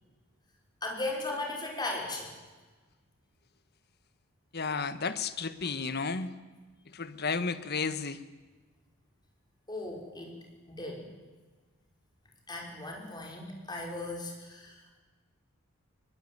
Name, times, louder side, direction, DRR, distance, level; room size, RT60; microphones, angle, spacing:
voice 1, 0.8-2.3 9.7-10.4 10.7-11.1 12.5-15.0, left 2 dB, 20° left, 0 dB, 5.9 m, -37 dB
voice 2, 4.5-6.3 6.9-8.2, left 4 dB, 50° left, 13 dB, 1.4 m, -33 dB
23.5 x 21.5 x 9.6 m, 1.3 s
head